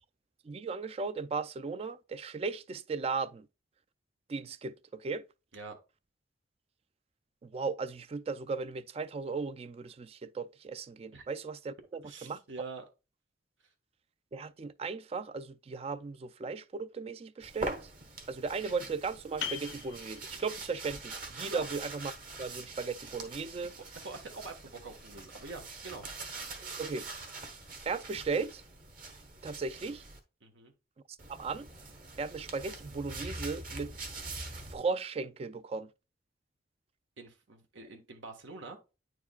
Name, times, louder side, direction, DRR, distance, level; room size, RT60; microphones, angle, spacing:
voice 1, 0.4-3.5 4.3-5.2 7.4-12.4 14.3-17.9 18.3-22.1 22.4-23.7 26.8-27.1 27.9-28.6 29.4-30.0 31.3-31.7 32.2-33.9 34.7-35.9, right 4 dB, 30° right, 0.3 m, -36 dB
voice 2, 12.0-12.8 21.5-21.7 23.6-26.0 30.4-30.7 37.2-38.8, right 3 dB, 85° right, 1.3 m, -45 dB
sound 1, 17.4-30.2 31.2-34.8, right 3 dB, 45° right, 1.3 m, -44 dB
sound 2, 19.4-24.8, left 9 dB, 65° left, 0.5 m, -46 dB
9.3 x 4.7 x 2.3 m
head